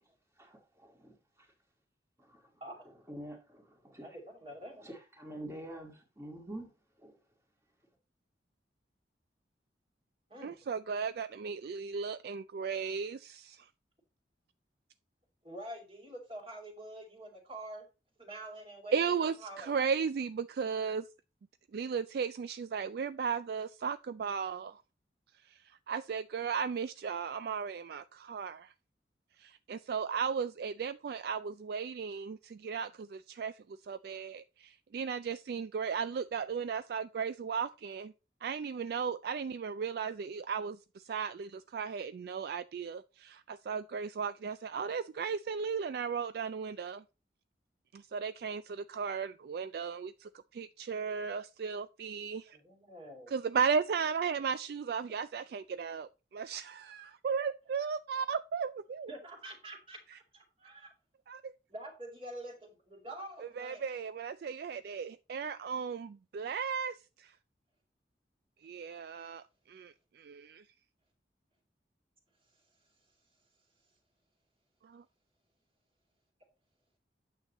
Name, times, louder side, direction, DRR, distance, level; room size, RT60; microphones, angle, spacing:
voice 1, 0.4-1.1 2.3-2.4 3.1-4.0 4.8-6.7 7.0-7.1, right 1 dB, 15° right, 2.0 m, -46 dB
voice 2, 2.6-2.9 4.0-4.8 10.3-10.7 15.4-17.9 18.2-19.8 52.5-53.3 59.1-60.7 61.7-63.8, right 1 dB, 30° right, 2.4 m, -46 dB
voice 3, 10.4-13.7 18.9-21.0 21.7-24.8 25.9-28.7 29.4-38.1 38.4-47.0 47.9-52.6 53.3-59.1 63.4-67.3 68.6-70.6 74.8-75.0, right 6 dB, 60° right, 0.3 m, -36 dB
9.0 x 6.8 x 3.0 m
head